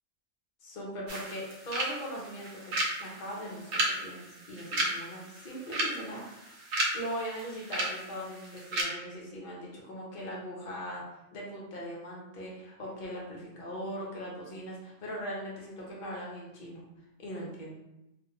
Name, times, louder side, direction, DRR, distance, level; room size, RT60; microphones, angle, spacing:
voice 1, 0.6-6.6 6.9-11.0 11.3-16.8 17.2-17.8, equal, 45° left, -4 dB, 0.8 m, -40 dB
sound 1, 1.1-8.8, right 1 dB, 70° right, 0.9 m, -34 dB
2.5 x 2.2 x 2.9 m, 0.90 s
omnidirectional pair, 1.3 m